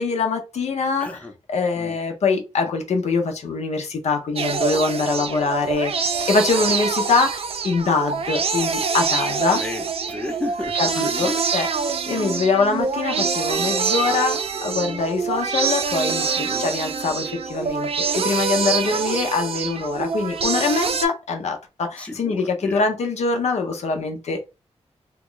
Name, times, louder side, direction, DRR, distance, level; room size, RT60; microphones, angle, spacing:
voice 1, 0.0-1.2 1.5-9.6 10.8-11.7 12.1-24.6, left 4 dB, 75° left, 0.7 m, -23 dB
voice 2, 1.0-1.3 1.7-2.0 6.5-6.7 9.5-11.4 16.5-16.7 22.0-22.8, left 2 dB, 10° left, 0.7 m, -33 dB
sound 1, 4.4-21.1, right 6 dB, 60° right, 0.5 m, -25 dB
2.9 x 2.3 x 3.7 m
wide cardioid pair, 100°, 11 cm